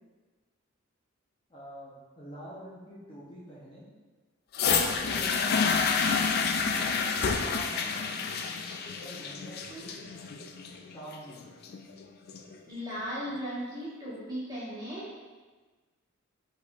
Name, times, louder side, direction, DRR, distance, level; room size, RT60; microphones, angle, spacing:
voice 1, 1.5-3.9 4.7-5.9 6.6-8.2 9.0-10.0 10.9-11.5, equal, 25° left, -8 dB, 0.8 m, -45 dB
sound 1, 4.5-12.5 13.3-13.4, left 5 dB, 50° left, 0.3 m, -29 dB
voice 2, 12.7-15.1, equal, 20° right, -9 dB, 1.4 m, -36 dB
5.0 x 4.1 x 2.5 m, 1.3 s
head